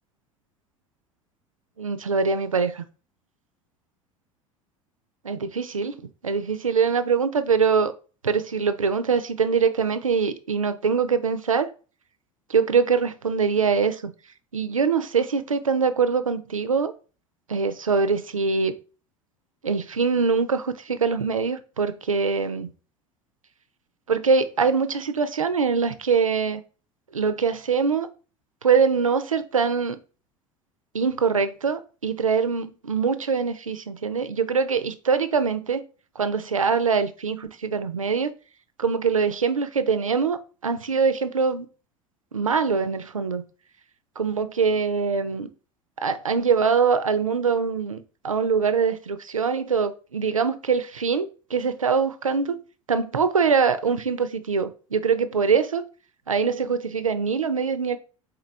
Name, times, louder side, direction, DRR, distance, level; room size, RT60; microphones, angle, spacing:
voice 1, 1.8-2.8 5.2-6.0 6.2-7.9 8.2-11.7 12.5-14.1 14.5-16.9 17.5-18.7 19.6-22.7 24.1-26.6 27.1-28.1 28.6-30.0 30.9-35.8 36.2-38.3 38.8-41.7 42.3-43.4 44.2-45.5 46.0-52.6 52.9-55.8 56.3-58.0, right 5 dB, 85° right, 0.5 m, -23 dB
4.5 x 3.8 x 3.1 m
figure-of-eight pair, 75°, 17 cm